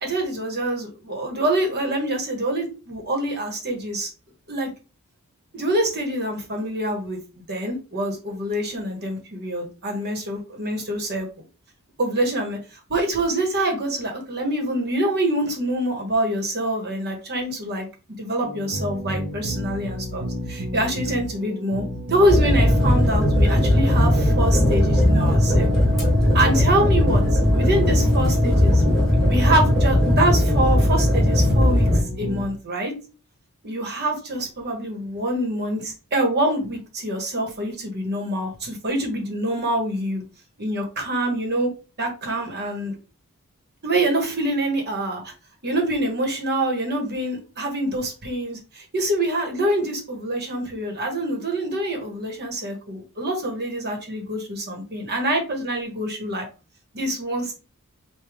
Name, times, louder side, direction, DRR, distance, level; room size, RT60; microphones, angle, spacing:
voice 1, 0.0-4.1 4.5-4.7 5.5-11.3 12.0-17.9 18.2-25.7 26.3-28.8 29.2-32.9 33.6-40.2 40.6-41.7 42.0-42.9 43.8-45.3 45.6-56.4 56.9-57.5, right 1 dB, 50° right, 3 dB, 1.4 m, -25 dB
sound 1, 18.4-32.5, right 1 dB, 75° right, 1.0 m, -30 dB
sound 2, 22.3-32.0, left 1 dB, ahead, 1.8 m, -18 dB
5.0 x 2.6 x 3.6 m, 0.33 s
head